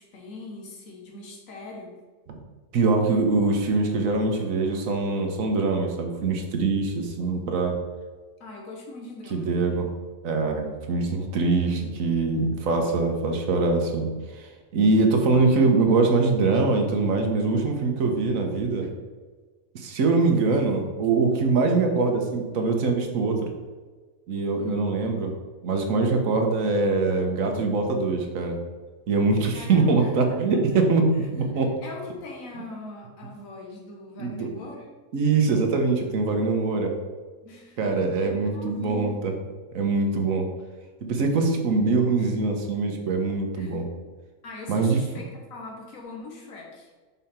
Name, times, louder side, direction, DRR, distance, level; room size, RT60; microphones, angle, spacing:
voice 1, 0.0-2.0 8.4-9.8 10.6-10.8 24.6-24.9 29.5-30.6 31.2-31.3 31.5-34.9 37.4-39.1 42.2-42.4 43.5-43.8 44.4-46.9, left 2 dB, 85° left, -1 dB, 1.6 m, -41 dB
voice 2, 2.7-7.8 9.3-9.9 10.2-14.5 14.7-18.9 19.7-23.4 24.3-25.3 25.6-28.6 29.1-31.0 31.3-31.7 34.2-34.5 35.1-36.9 37.8-39.3 39.7-40.5 41.0-43.9 44.7-45.0, right 3 dB, 80° right, 3 dB, 1.4 m, -23 dB
5.6 x 5.5 x 4.3 m, 1.4 s
omnidirectional pair, 1.4 m